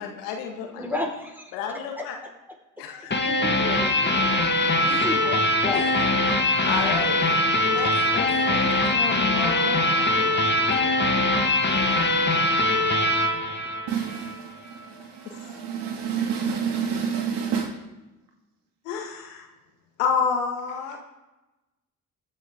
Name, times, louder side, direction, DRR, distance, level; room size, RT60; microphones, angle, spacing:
voice 1, 0.0-0.9 1.5-2.2 2.8-3.2 4.9-5.0 5.7-10.7 11.0-12.0 15.3-15.6 18.8-19.5 20.0-21.0, left 6 dB, 75° left, 1.9 m, -32 dB
voice 2, 0.7-1.5 3.2-4.4 4.8-5.8, left 1 dB, 5° right, 4.9 m, -33 dB
sound 1, 3.1-14.4, left 1 dB, 25° left, 2.0 m, -22 dB
voice 3, 13.9-14.3 15.4-17.7, right 7 dB, 65° right, 2.6 m, -27 dB
22.5 x 10.0 x 3.8 m
hypercardioid pair, 50°, 44 cm